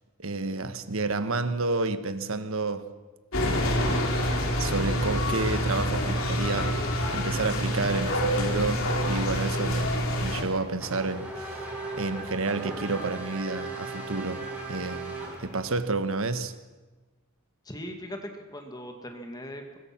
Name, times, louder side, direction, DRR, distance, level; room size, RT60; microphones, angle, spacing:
voice 1, 0.2-2.9 3.4-4.3 4.6-11.7 11.9-15.1 15.4-16.5, right 3 dB, 65° right, 1.4 m, -30 dB
sound 1, 3.3-10.4, equal, 65° left, 3.5 m, -27 dB
Race car auto racing / Accelerating revving vroom, 10.4-15.8, right 2 dB, 5° right, 5.1 m, -38 dB
voice 2, 17.6-19.8, equal, 20° left, 2.2 m, -39 dB
23.5 x 21.0 x 6.1 m
head